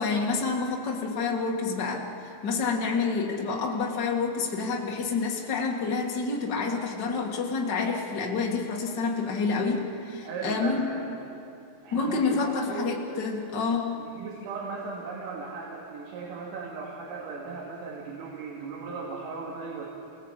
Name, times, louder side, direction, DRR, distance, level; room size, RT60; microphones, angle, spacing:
voice 1, 0.0-2.0 2.4-10.9 11.9-14.0, left 4 dB, 55° left, -1 dB, 1.1 m, -28 dB
voice 2, 10.2-11.1 11.8-13.0 14.0-19.9, right 4 dB, 90° right, -3 dB, 5.1 m, -37 dB
28.0 x 19.5 x 8.2 m, 2.8 s
omnidirectional pair, 5.7 m